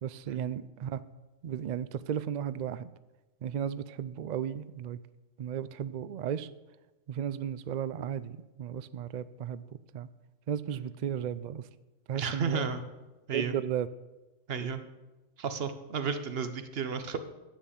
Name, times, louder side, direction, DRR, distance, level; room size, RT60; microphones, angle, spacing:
voice 1, 0.0-1.0 1.4-2.9 3.4-5.0 5.4-6.5 7.1-9.6 9.9-10.1 10.5-11.7 12.1-12.7 13.3-13.9, right 9 dB, 80° right, 15 dB, 0.4 m, -34 dB
voice 2, 12.1-12.8 13.3-13.6 14.5-14.8 15.4-17.2, right 6 dB, 55° right, 9 dB, 1.1 m, -32 dB
10.5 x 8.7 x 7.1 m, 1.1 s
omnidirectional pair, 1.3 m